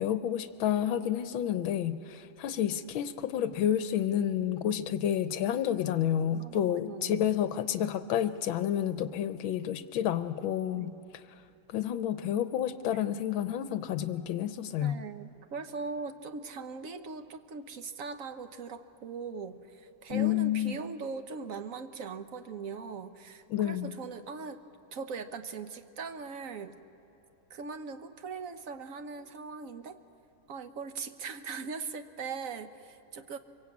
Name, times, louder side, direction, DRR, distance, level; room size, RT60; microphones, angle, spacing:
voice 1, 0.0-10.9 11.7-15.0 20.1-20.8 23.5-23.9, left 10 dB, 80° left, 12 dB, 1.6 m, -30 dB
voice 2, 6.3-7.2 10.7-11.0 12.9-13.0 14.8-24.6 24.9-26.8 27.5-30.0 30.5-33.4, right 5 dB, 55° right, 9 dB, 1.1 m, -40 dB
24.5 x 23.5 x 8.5 m, 2.8 s
omnidirectional pair, 2.2 m